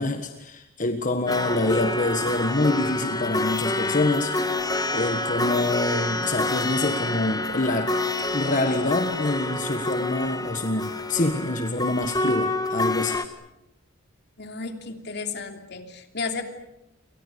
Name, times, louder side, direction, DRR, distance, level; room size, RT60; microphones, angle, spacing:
voice 1, 0.0-4.4 4.9-7.9 8.3-13.2, left 2 dB, 40° left, 7 dB, 1.6 m, -26 dB
sound 1, 1.3-13.3, left 2 dB, 20° left, 1.5 m, -28 dB
voice 2, 14.4-16.4, left 4 dB, 60° left, 6 dB, 3.1 m, -33 dB
29.5 x 24.0 x 6.9 m, 0.89 s
head